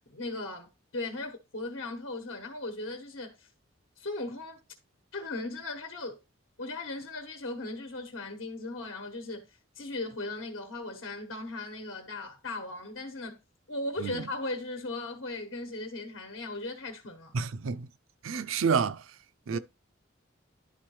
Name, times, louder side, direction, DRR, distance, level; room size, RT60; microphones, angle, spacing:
voice 1, 0.1-3.5 4.0-4.6 5.1-6.2 6.6-13.4 13.7-17.4 19.5-19.6, left 2 dB, 80° left, 1.2 m, -37 dB
voice 2, 17.3-17.9 18.2-19.0 19.5-19.6, right 5 dB, 85° right, 0.5 m, -28 dB
11.5 x 3.8 x 3.1 m
head